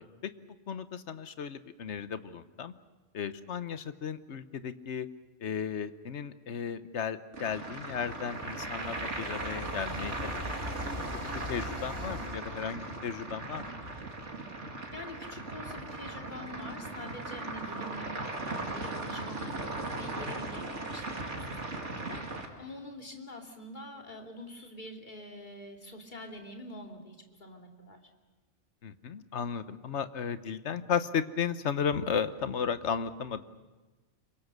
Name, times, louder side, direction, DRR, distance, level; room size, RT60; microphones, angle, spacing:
voice 1, 0.7-2.7 3.1-5.1 5.4-10.4 10.8-11.0 11.5-13.8 28.8-33.4, left 7 dB, 75° left, 12 dB, 1.3 m, -34 dB
sound 1, 7.3-22.5, right 2 dB, 80° right, 2.8 m, -38 dB
sound 2, 7.7-12.4, equal, 50° right, 4.5 m, -41 dB
voice 2, 14.9-22.2 22.6-28.0, left 1 dB, 40° left, 2 dB, 2.8 m, -45 dB
26.5 x 23.5 x 6.7 m, 1.2 s
omnidirectional pair, 1.2 m